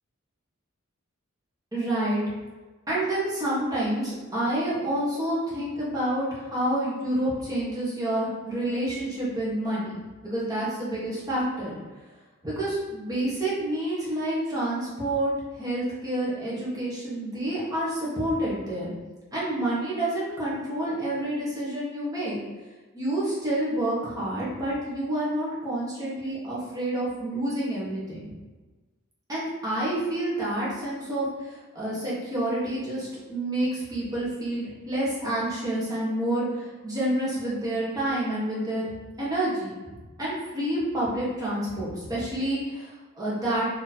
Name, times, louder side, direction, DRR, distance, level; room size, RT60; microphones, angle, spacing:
voice 1, 1.7-2.2 2.9-9.9 10.2-11.8 12.4-15.3 15.6-18.9 19.3-22.4 22.9-28.3 29.3-38.9 39.2-39.7 40.2-43.7, right 1 dB, 15° right, -7 dB, 1.2 m, -28 dB
3.0 x 2.8 x 4.0 m, 1.2 s
head